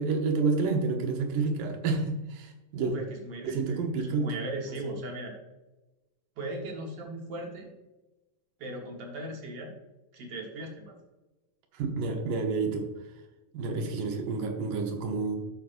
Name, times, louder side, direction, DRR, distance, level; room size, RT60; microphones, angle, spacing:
voice 1, 0.0-2.9 3.4-4.3 4.7-4.9 11.7-12.9 13.5-15.4, right 4 dB, 75° right, 4 dB, 2.6 m, -29 dB
voice 2, 2.8-5.4 6.4-7.7 8.6-9.7 10.1-11.0, right 2 dB, 55° right, 1 dB, 2.0 m, -38 dB
13.0 x 5.8 x 2.5 m, 1.1 s
omnidirectional pair, 3.9 m